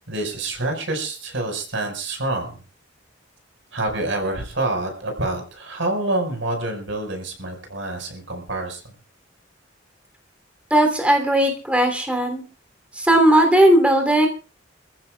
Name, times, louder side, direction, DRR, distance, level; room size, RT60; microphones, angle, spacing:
voice 1, 0.0-2.5 3.7-8.8, right 2 dB, 85° right, 3 dB, 5.3 m, -27 dB
voice 2, 10.7-12.4 12.9-14.3, right 1 dB, 5° right, 3 dB, 3.2 m, -17 dB
28.5 x 15.0 x 2.4 m, 0.35 s
head